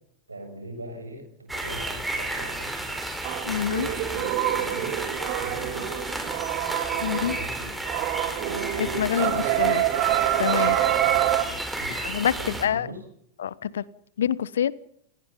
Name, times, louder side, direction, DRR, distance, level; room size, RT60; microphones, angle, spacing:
voice 1, 0.3-3.1 3.7-4.3 4.6-5.0 5.4-5.9 7.1-7.9 8.4-10.0 10.8-12.0 12.4-13.0, right 1 dB, 80° right, 5 dB, 6.9 m, -41 dB
sound 1, 1.5-12.7, right 2 dB, 5° right, 4.8 m, -32 dB
sound 2, 3.2-7.5 7.8-11.4, right 14 dB, 45° right, 2.6 m, -26 dB
voice 2, 3.4-3.9 7.0-7.4 8.8-9.8 10.4-10.8 12.0-12.9 13.4-13.8 14.2-14.7, left 9 dB, 65° left, 21 dB, 1.0 m, -26 dB
29.0 x 18.5 x 5.5 m, 0.68 s
figure-of-eight pair, 90°, 0 cm